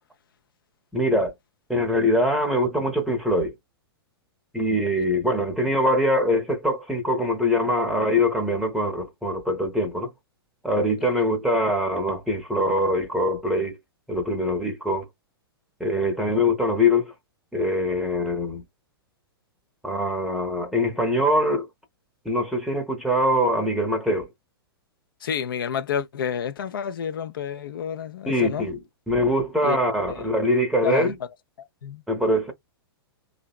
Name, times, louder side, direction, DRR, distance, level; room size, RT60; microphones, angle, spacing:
voice 1, 0.9-1.3 1.7-3.5 4.5-10.1 10.6-13.8 14.1-15.1 15.8-17.1 17.5-18.6 19.8-21.7 22.2-24.3 28.3-28.8 29.1-31.1 32.1-32.5, left 1 dB, ahead, 0.7 m, -23 dB
voice 2, 25.2-28.7 29.6-29.8 30.1-30.3 30.8-31.1 31.8-32.0, left 8 dB, 60° left, 0.4 m, -29 dB
2.6 x 2.1 x 2.3 m
figure-of-eight pair, 105°, 13 cm